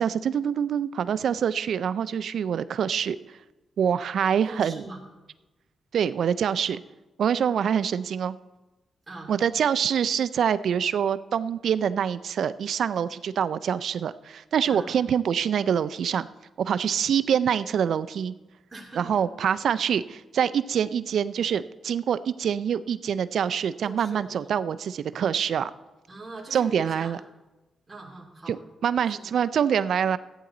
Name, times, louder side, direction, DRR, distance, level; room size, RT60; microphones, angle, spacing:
voice 1, 0.0-3.4 3.8-4.9 5.9-6.8 7.2-8.4 9.3-16.3 16.6-18.3 19.0-25.7 26.5-27.2 28.5-30.2, right 8 dB, 70° right, 15 dB, 0.4 m, -25 dB
voice 2, 4.4-5.0 9.1-9.3 14.6-14.9 18.7-19.1 23.8-24.5 26.1-27.2 27.9-28.6 29.0-29.3, right 2 dB, 20° right, -3 dB, 2.8 m, -42 dB
14.0 x 9.0 x 3.9 m, 1.1 s
cardioid pair, 80°, 0 cm